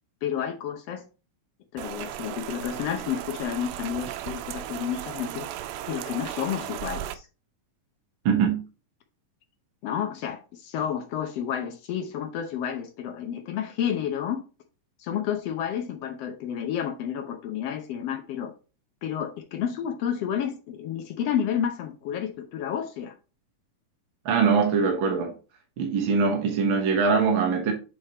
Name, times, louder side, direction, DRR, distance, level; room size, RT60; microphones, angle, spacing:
voice 1, 0.2-1.0 1.7-5.5 5.9-7.3 9.8-14.4 15.0-18.5 19.0-23.1, left 9 dB, 85° left, 1.3 m, -30 dB
Rain, 1.8-7.2, right 12 dB, 90° right, 2.5 m, -36 dB
voice 2, 8.2-8.6 24.2-25.3 25.8-27.7, right 5 dB, 55° right, 1.3 m, -22 dB
7.9 x 4.8 x 2.9 m
omnidirectional pair, 4.1 m